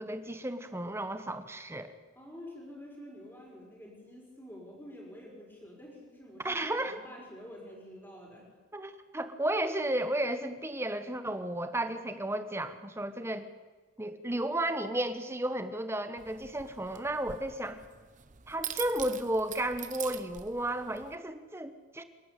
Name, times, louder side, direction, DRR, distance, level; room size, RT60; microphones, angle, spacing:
voice 1, 0.0-1.9 6.4-7.0 8.7-13.5 14.0-17.8 18.5-22.0, right 1 dB, 10° right, 9 dB, 1.1 m, -33 dB
voice 2, 2.2-8.5, left 1 dB, 10° left, -1 dB, 5.3 m, -48 dB
sound 1, 16.2-21.2, right 10 dB, 40° right, 0.8 m, -44 dB
27.0 x 11.5 x 8.3 m, 1.4 s
head